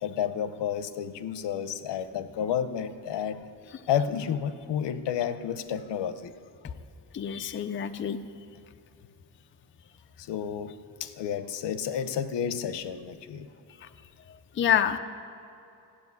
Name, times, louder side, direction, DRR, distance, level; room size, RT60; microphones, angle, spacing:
voice 1, 0.0-3.4 3.9-6.3 10.3-10.7 11.0-13.5, left 8 dB, 80° left, 12 dB, 0.8 m, -31 dB
voice 2, 7.1-8.2 14.6-15.0, left 9 dB, 30° left, 8 dB, 0.5 m, -26 dB
14.5 x 7.8 x 9.5 m, 2.7 s
wide cardioid pair, 170°, 42 cm